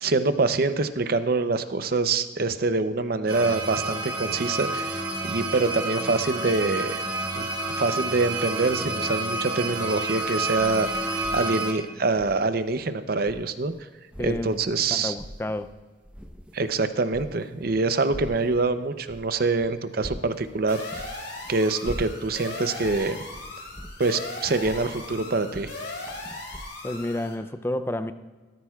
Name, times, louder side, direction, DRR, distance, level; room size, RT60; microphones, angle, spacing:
voice 1, 0.0-7.0 7.4-7.5 7.8-13.7 14.2-15.1 16.5-21.1 21.5-23.2 24.0-25.7, right 3 dB, 55° right, 11 dB, 0.6 m, -25 dB
sound 1, 3.3-11.7, right 2 dB, 20° right, 1.6 m, -29 dB
sound 2, 10.2-13.8 14.1-15.7 16.0-26.6, equal, 5° right, 0.9 m, -43 dB
voice 2, 14.2-14.6 14.9-15.7 26.8-28.1, left 1 dB, 15° left, 10 dB, 0.4 m, -30 dB
sound 3, 20.7-27.3, left 2 dB, 65° left, 3.2 m, -38 dB
17.0 x 13.5 x 2.4 m, 1.4 s
head